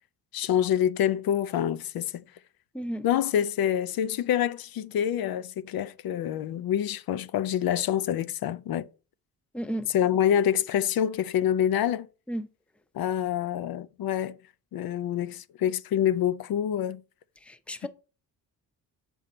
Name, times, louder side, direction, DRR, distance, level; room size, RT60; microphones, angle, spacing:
voice 1, 0.3-2.2 3.0-8.9 9.9-12.1 12.9-14.4 14.7-17.0, left 10 dB, 70° left, 0.6 m, -26 dB
voice 2, 2.7-3.1 9.5-9.9 12.3-12.5 17.4-17.9, equal, 5° left, 0.6 m, -33 dB
7.5 x 5.5 x 4.3 m
cardioid pair, 135°, 36 cm